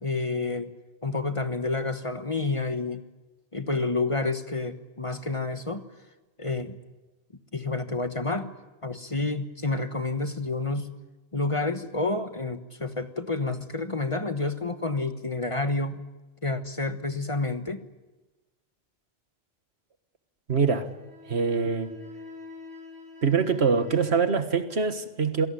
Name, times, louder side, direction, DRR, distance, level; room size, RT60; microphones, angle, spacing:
voice 1, 0.0-0.7 1.0-3.0 3.5-5.8 6.4-6.8 7.5-8.5 8.8-10.9 11.3-16.0 16.4-17.8, left 3 dB, 30° left, 9 dB, 1.3 m, -29 dB
voice 2, 20.5-20.9 21.3-21.9 23.2-25.5, right 5 dB, 75° right, 9 dB, 1.7 m, -24 dB
sound 1, 20.7-24.2, left 3 dB, 5° right, 5.8 m, -46 dB
27.0 x 18.0 x 9.8 m, 1.1 s
omnidirectional pair, 1.1 m